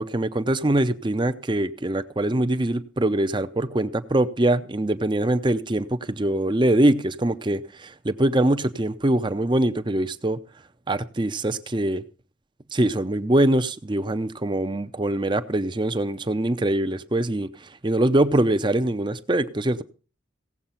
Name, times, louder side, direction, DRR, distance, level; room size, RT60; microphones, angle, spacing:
voice 1, 0.0-10.4 10.9-12.0 12.7-19.8, right 1 dB, 25° right, 0.6 m, -23 dB
17.0 x 7.8 x 5.7 m
head